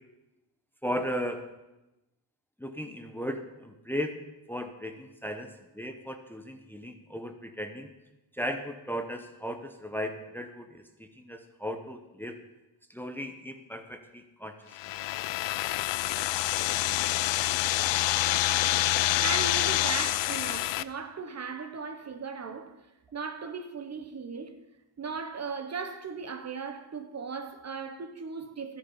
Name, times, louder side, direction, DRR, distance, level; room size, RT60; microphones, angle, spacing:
voice 1, 0.8-1.4 2.6-4.2 4.5-7.9 8.3-12.4 12.9-14.6, equal, 5° left, 0.9 m, -36 dB
sound 1, 14.7-20.8, left 15 dB, 85° left, 0.5 m, -27 dB
voice 2, 19.2-22.9 23.1-24.6 25.0-28.8, right 5 dB, 35° right, 0.9 m, -37 dB
12.5 x 10.5 x 5.5 m
cardioid pair, 120°, 43 cm